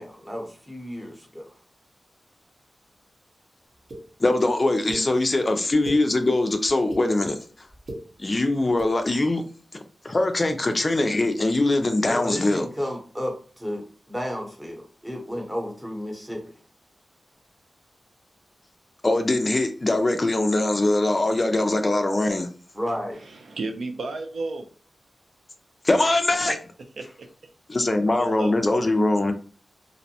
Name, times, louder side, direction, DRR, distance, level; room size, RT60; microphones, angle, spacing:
voice 1, 0.0-1.5 12.1-16.4 22.7-23.2, equal, 10° right, 0.8 m, -32 dB
sound 1, 3.9-4.0 4.9-5.0 5.6-6.0 6.7-7.0 7.7-8.0 8.7-8.9, right 1 dB, 55° right, 0.9 m, -35 dB
voice 2, 4.2-7.4 8.2-9.4 9.7-12.7 19.0-22.5 25.8-26.6 27.7-29.3, left 2 dB, 30° left, 0.3 m, -22 dB
voice 3, 23.2-24.6 26.5-26.6 27.0-27.1 28.2-28.9, right 3 dB, 80° right, 0.4 m, -33 dB
2.5 x 2.0 x 2.7 m
wide cardioid pair, 90°, 0 cm